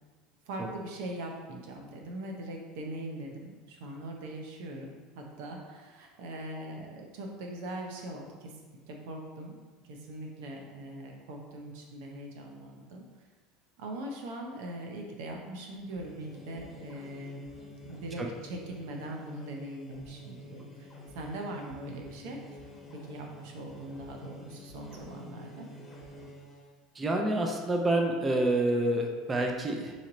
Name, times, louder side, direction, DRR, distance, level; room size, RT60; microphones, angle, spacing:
voice 1, 0.5-8.5 8.9-9.6 9.9-13.1 13.8-17.6 17.8-22.4 23.1-25.7, right 1 dB, 75° right, 1 dB, 0.7 m, -41 dB
sound 1, 15.7-26.8, equal, 20° left, 1.1 m, -48 dB
voice 2, 26.9-29.9, right 1 dB, 25° right, 2 dB, 0.6 m, -28 dB
4.2 x 3.1 x 3.9 m, 1.4 s
supercardioid pair, 100°, 0 cm